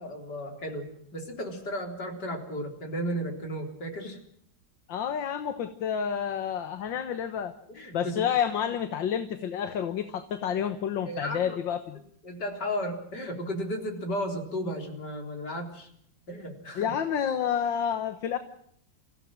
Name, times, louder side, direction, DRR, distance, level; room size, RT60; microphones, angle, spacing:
voice 1, 0.0-4.2 7.7-8.1 11.1-11.6 12.2-15.9 16.3-16.9, equal, 60° left, 3 dB, 4.5 m, -34 dB
voice 2, 4.9-7.5 7.9-12.0 16.8-18.4, left 8 dB, 75° left, 9 dB, 1.9 m, -29 dB
26.5 x 16.0 x 7.5 m, 0.68 s
omnidirectional pair, 2.0 m